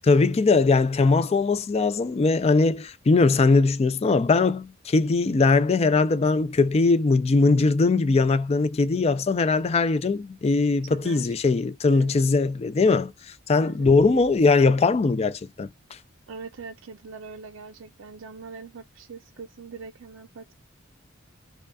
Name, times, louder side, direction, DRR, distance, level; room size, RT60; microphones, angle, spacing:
voice 1, 0.0-16.0, left 3 dB, 30° left, 0.4 m, -21 dB
voice 2, 10.9-11.3 11.9-12.2 13.6-14.0 16.3-20.5, right 4 dB, 80° right, 0.5 m, -42 dB
5.0 x 2.3 x 2.3 m
head